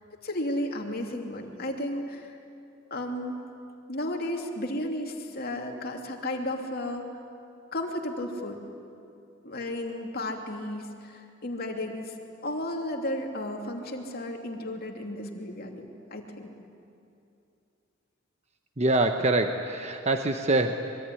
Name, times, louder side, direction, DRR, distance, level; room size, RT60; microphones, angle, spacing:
voice 1, 0.2-2.4 2.9-3.4 3.9-7.1 7.7-8.6 9.4-12.1 12.4-16.6, left 1 dB, 50° left, 2 dB, 2.8 m, -33 dB
voice 2, 18.8-20.8, right 2 dB, 35° right, 5 dB, 1.0 m, -24 dB
25.0 x 23.0 x 9.9 m, 2.6 s
head